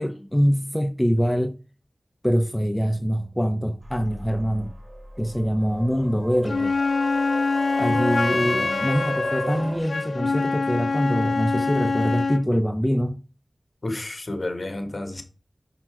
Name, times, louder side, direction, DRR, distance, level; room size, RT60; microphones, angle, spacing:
voice 1, 0.0-1.5 2.2-4.7 5.2-6.7 7.8-13.2, equal, 10° left, 0.7 m, -24 dB
sound 1, 3.8-9.8, right 2 dB, 40° right, 3.3 m, -35 dB
Wind instrument woodwind instrument, 6.4-12.5, left 4 dB, 75° left, 0.6 m, -25 dB
voice 2, 8.4-8.8 13.8-15.2, left 1 dB, 50° left, 1.7 m, -31 dB
6.0 x 5.9 x 4.6 m
wide cardioid pair, 50°, 0 cm